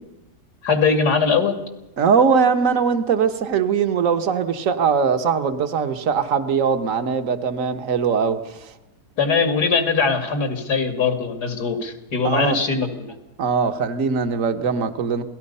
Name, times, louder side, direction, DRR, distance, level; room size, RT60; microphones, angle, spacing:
voice 1, 0.6-1.6 9.2-13.1, left 5 dB, 85° left, 6 dB, 2.9 m, -21 dB
voice 2, 2.0-8.6 12.2-12.6 13.4-15.2, right 6 dB, 55° right, 8 dB, 1.6 m, -21 dB
27.5 x 18.0 x 5.6 m, 0.96 s
omnidirectional pair, 1.7 m